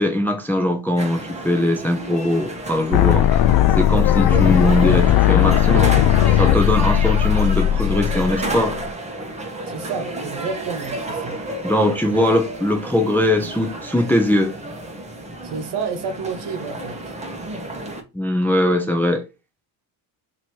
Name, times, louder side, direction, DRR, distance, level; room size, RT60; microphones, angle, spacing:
voice 1, 0.0-3.3 3.8-5.9 6.1-8.8 11.6-14.6 18.1-19.2, left 1 dB, 5° left, 0.6 m, -20 dB
sound 1, 1.0-18.0, right 2 dB, 15° right, 0.9 m, -31 dB
sound 2, 2.9-8.9, left 11 dB, 55° left, 0.5 m, -17 dB
voice 2, 9.6-11.4 15.4-17.1, right 5 dB, 60° right, 1.1 m, -30 dB
3.0 x 2.9 x 4.4 m
cardioid pair, 105°, 46 cm